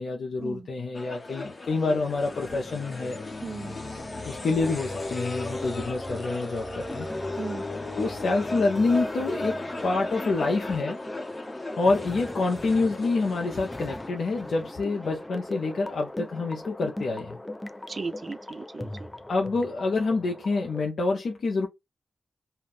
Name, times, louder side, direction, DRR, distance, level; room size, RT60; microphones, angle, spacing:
voice 1, 0.0-3.2 4.2-7.1 8.0-11.0 11.8-17.4 19.3-21.7, left 3 dB, 75° left, 0.5 m, -27 dB
sound 1, 0.9-14.1, left 2 dB, 40° left, 0.8 m, -36 dB
voice 2, 3.4-3.8 7.4-7.7 17.9-19.1, right 4 dB, 50° right, 0.3 m, -36 dB
sound 2, 4.6-20.9, left 1 dB, 20° left, 0.4 m, -39 dB
2.4 x 2.2 x 3.4 m
cardioid pair, 45°, 0 cm